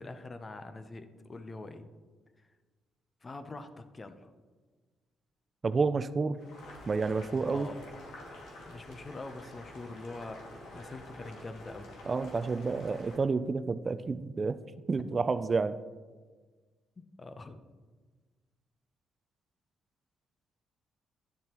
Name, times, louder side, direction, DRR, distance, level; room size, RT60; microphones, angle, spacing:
voice 1, 0.0-1.9 3.2-4.3 7.5-7.8 8.6-10.4 10.7-11.9 17.0-17.6, left 2 dB, 30° left, 9 dB, 0.6 m, -44 dB
voice 2, 5.6-6.4 6.9-7.7 12.1-14.6 14.9-15.8, right 4 dB, 35° right, 12 dB, 0.3 m, -29 dB
Boiling, 6.4-13.2, left 1 dB, 90° left, 2.1 m, -48 dB
10.5 x 7.3 x 3.0 m, 1.4 s
cardioid pair, 90°, 0 cm